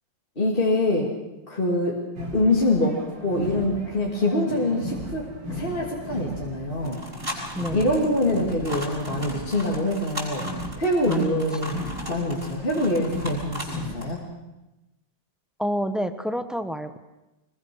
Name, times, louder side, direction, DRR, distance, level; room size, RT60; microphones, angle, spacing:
voice 1, 0.4-1.1 1.5-2.0 2.3-5.2 5.5-7.0 7.7-10.4 10.8-11.8 12.1-14.2, left 1 dB, 25° left, -3 dB, 2.9 m, -24 dB
sound 1, 2.2-14.0, left 1 dB, 70° right, 4.3 m, -37 dB
sound 2, 6.8-13.8 14.0-14.1, left 1 dB, 30° right, 7.2 m, -37 dB
voice 2, 7.6-7.9 11.1-11.6 15.6-17.0, equal, ahead, 8 dB, 0.6 m, -29 dB
25.0 x 21.5 x 6.4 m, 0.99 s
omnidirectional pair, 2.1 m